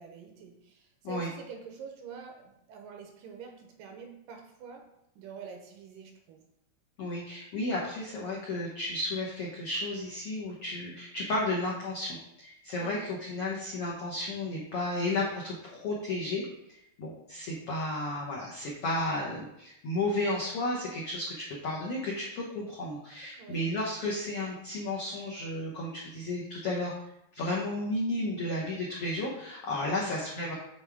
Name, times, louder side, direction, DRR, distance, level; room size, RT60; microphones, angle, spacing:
voice 1, 0.0-4.9 5.2-6.5 12.8-12.9 23.4-23.6 30.0-30.1, right 6 dB, 75° right, 3 dB, 2.2 m, -46 dB
voice 2, 7.0-13.0 13.3-26.9 27.3-30.5, left 2 dB, 75° left, -4 dB, 1.3 m, -33 dB
7.5 x 3.5 x 4.8 m, 0.80 s
omnidirectional pair, 4.1 m